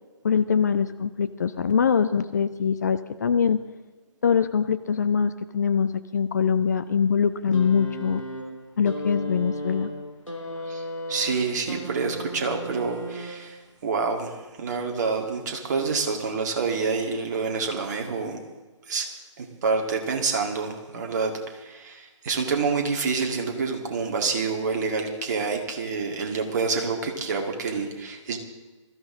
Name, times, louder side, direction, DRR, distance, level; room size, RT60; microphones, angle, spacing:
voice 1, 0.2-3.6 4.2-8.2 8.8-9.9, left 6 dB, 35° left, 11 dB, 0.5 m, -23 dB
sound 1, 7.5-13.7 14.7-14.9, equal, 85° left, 3.7 m, -35 dB
voice 2, 11.1-18.4 18.9-19.1 19.4-28.4, right 4 dB, 35° right, 2 dB, 2.0 m, -27 dB
20.0 x 14.0 x 3.7 m, 1.2 s
figure-of-eight pair, 140°, 16 cm